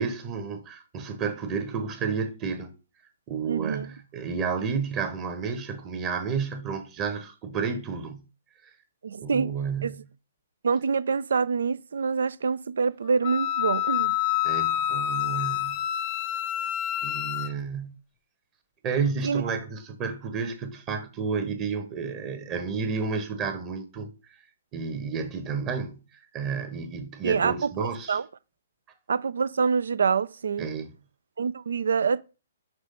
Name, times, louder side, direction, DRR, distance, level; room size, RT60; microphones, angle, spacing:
voice 1, 0.0-2.7 3.3-8.3 9.2-10.0 14.4-15.8 17.0-17.9 18.8-24.1 24.7-26.0 26.3-28.2 30.6-30.9, right 5 dB, 25° right, 1.1 m, -31 dB
voice 2, 3.5-3.9 9.0-9.5 9.8-9.9 10.6-14.1 19.2-19.4 27.2-28.3 29.1-30.7 31.4-32.2, right 5 dB, 65° right, 0.4 m, -26 dB
Wind instrument woodwind instrument, 13.2-17.5, left 12 dB, 30° left, 0.4 m, -27 dB
6.1 x 3.2 x 5.3 m
figure-of-eight pair, 125°, 0 cm